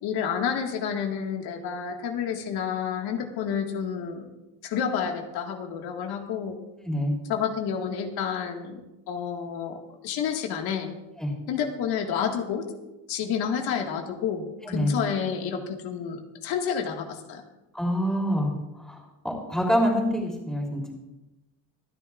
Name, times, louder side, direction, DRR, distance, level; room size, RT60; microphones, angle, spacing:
voice 1, 0.0-4.3 4.6-6.6 7.3-8.8 9.1-9.8 10.0-10.9 11.5-12.7 13.1-17.4, left 7 dB, 85° left, 2 dB, 1.8 m, -29 dB
voice 2, 6.8-7.1 11.2-11.3 14.6-14.9 17.7-18.5 18.8-19.0 19.2-20.9, equal, ahead, -2 dB, 3.2 m, -26 dB
26.0 x 10.5 x 2.4 m, 1.0 s
cardioid pair, 170°, 38 cm